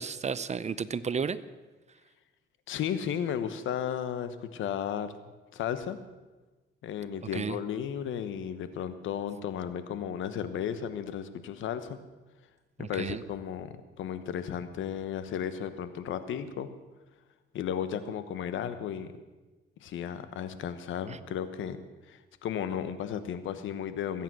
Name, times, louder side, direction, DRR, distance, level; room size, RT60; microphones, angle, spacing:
voice 1, 0.0-1.4 7.3-7.6 12.8-13.2 21.1-21.2, right 6 dB, 35° right, 15 dB, 0.7 m, -33 dB
voice 2, 2.7-5.1 5.5-6.0 6.8-12.0 12.8-16.7 17.5-19.1 19.8-21.8 22.1-24.2, left 9 dB, 80° left, 12 dB, 1.2 m, -34 dB
21.5 x 8.9 x 6.2 m, 1.2 s
cardioid pair, 90°, 20 cm